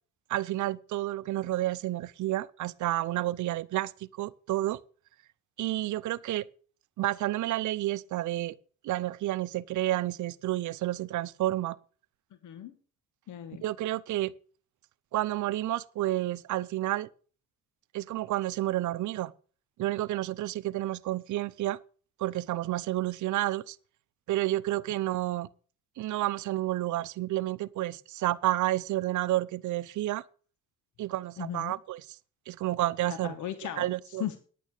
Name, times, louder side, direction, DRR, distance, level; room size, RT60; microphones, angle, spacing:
voice 1, 0.3-4.8 5.6-6.5 7.0-8.5 8.8-11.8 13.6-14.3 15.1-17.1 17.9-19.3 19.8-21.8 22.2-23.8 24.3-25.5 26.0-30.2 31.0-32.1 32.5-33.4 33.8-34.4, right 15 dB, 75° right, 0.7 m, -30 dB
voice 2, 12.4-12.8 13.3-13.6 31.4-31.8 33.1-33.8 34.2-34.4, left 10 dB, 75° left, 1.3 m, -36 dB
10.0 x 8.9 x 6.8 m
cardioid pair, 90°, 30 cm